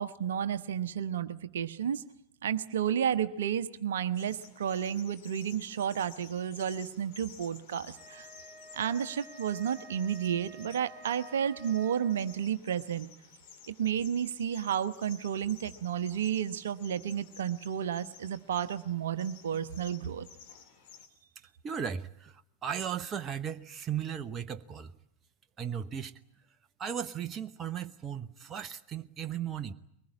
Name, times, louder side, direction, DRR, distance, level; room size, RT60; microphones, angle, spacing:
voice 1, 0.0-2.0 2.4-8.3 8.7-13.1 13.7-20.2, right 9 dB, 60° right, 12 dB, 1.0 m, -32 dB
sound 1, 4.1-21.1, left 7 dB, 45° left, 3.8 m, -54 dB
Wind instrument woodwind instrument, 7.9-12.5, right 2 dB, 10° left, 3.3 m, -51 dB
voice 2, 21.6-24.9 25.6-26.1 26.8-29.7, right 8 dB, 25° right, 10 dB, 0.9 m, -36 dB
23.0 x 20.0 x 9.9 m, 0.75 s
figure-of-eight pair, 90°, 0 cm